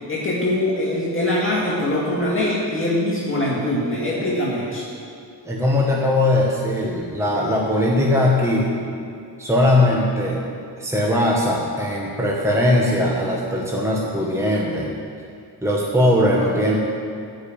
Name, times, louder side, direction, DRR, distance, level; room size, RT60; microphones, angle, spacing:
voice 1, 0.1-4.8, left 1 dB, 30° left, -6 dB, 2.2 m, -22 dB
voice 2, 5.4-8.7 9.4-10.4 10.8-14.9 15.6-16.8, left 1 dB, 5° right, -3 dB, 1.3 m, -20 dB
14.0 x 5.4 x 8.8 m, 2.4 s
wide cardioid pair, 120°, 42 cm